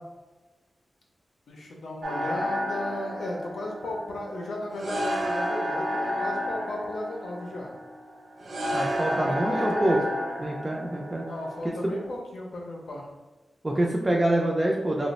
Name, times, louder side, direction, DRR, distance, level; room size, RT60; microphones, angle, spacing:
voice 1, 1.5-7.7 9.1-10.0 11.2-13.1, left 1 dB, 85° left, -1 dB, 0.6 m, -35 dB
sound 1, 2.0-12.0, equal, 70° right, 0.5 m, -31 dB
voice 2, 8.7-10.0 10.4-11.2 13.6-15.1, right 1 dB, 20° right, -2 dB, 0.3 m, -25 dB
3.0 x 2.0 x 4.0 m, 1.2 s
wide cardioid pair, 155°, 0 cm